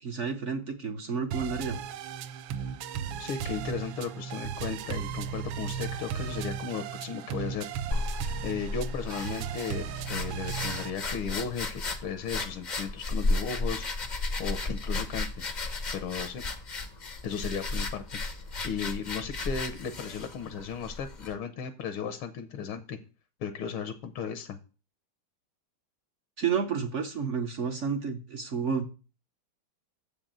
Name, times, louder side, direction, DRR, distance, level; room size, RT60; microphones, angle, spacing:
voice 1, 0.0-1.8 26.4-28.9, right 6 dB, 60° right, 6 dB, 0.7 m, -30 dB
sound 1, 1.3-10.9, right 8 dB, 75° right, 1.3 m, -36 dB
voice 2, 3.2-7.7 8.4-13.8 14.4-15.4 15.9-16.4 17.2-18.4 18.6-23.0 23.4-24.6, left 6 dB, 80° left, 9 dB, 1.6 m, -35 dB
sound 2, 7.9-21.3, left 2 dB, 55° left, 0.4 m, -34 dB
7.2 x 5.2 x 7.4 m, 0.35 s
omnidirectional pair, 2.3 m